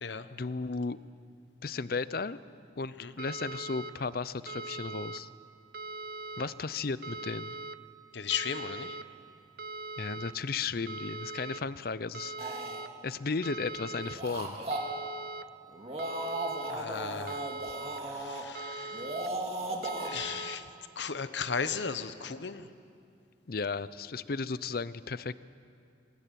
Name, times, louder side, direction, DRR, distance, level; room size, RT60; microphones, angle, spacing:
voice 1, 0.3-1.0 1.6-2.4 2.8-5.3 6.4-7.5 10.0-12.6 13.0-14.6 23.5-25.3, left 4 dB, 50° left, 16 dB, 0.6 m, -35 dB
sound 1, 3.2-3.9 4.5-5.2 5.7-6.5 7.0-7.8 8.3-9.0 9.6-10.3 10.9-11.6 12.1-12.9 13.4-14.2 14.7-15.4 16.0-16.7 17.3-18.0 18.6-19.3 19.8-20.6, right 2 dB, 55° right, 0.7 m, -41 dB
voice 2, 8.1-9.0 16.7-17.4 18.1-19.0 20.0-20.6 21.0-22.7, left 6 dB, 70° left, 11 dB, 1.0 m, -35 dB
sound 2, 12.4-12.8 14.0-14.8 15.7-18.4 18.9-20.1, right 2 dB, 30° right, 2.3 m, -36 dB
22.0 x 16.5 x 9.3 m, 2.5 s
head